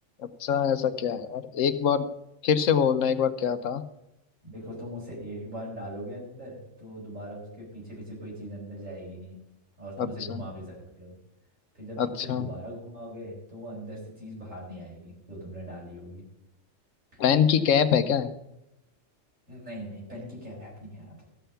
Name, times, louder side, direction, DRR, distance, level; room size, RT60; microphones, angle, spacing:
voice 1, 0.2-2.1 2.4-3.8 10.0-10.4 12.0-12.5 17.2-18.3, left 7 dB, 80° left, 11 dB, 1.2 m, -24 dB
voice 2, 4.4-9.4 9.8-11.2 11.7-16.2 17.1-17.3 19.5-21.2, equal, 75° right, -5 dB, 5.4 m, -40 dB
13.5 x 5.7 x 6.8 m, 0.85 s
omnidirectional pair, 1.3 m